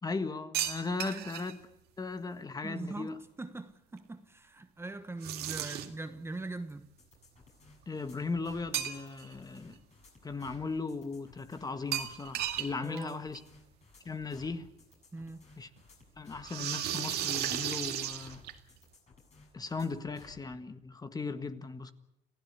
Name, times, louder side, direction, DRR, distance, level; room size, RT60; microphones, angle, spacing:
voice 1, 0.0-1.6 2.0-3.2 7.9-9.8 10.2-13.4 14.0-14.7 15.6-15.7 16.2-18.5 19.5-21.9, left 4 dB, 20° left, 1.6 m, -37 dB
sound 1, 0.5-1.5 5.2-6.1 8.7-9.3 9.7-9.8 11.9-12.7 13.0-13.1 13.3-13.4 14.6-14.7 16.4-18.8, right 11 dB, 75° right, 2.2 m, -34 dB
voice 2, 2.6-6.9 12.8-13.2 15.1-15.5, right 2 dB, 15° right, 1.2 m, -42 dB
sound 2, 7.0-20.4, left 4 dB, 40° left, 7.4 m, -58 dB
28.0 x 16.0 x 8.4 m
cardioid pair, 110°, 17 cm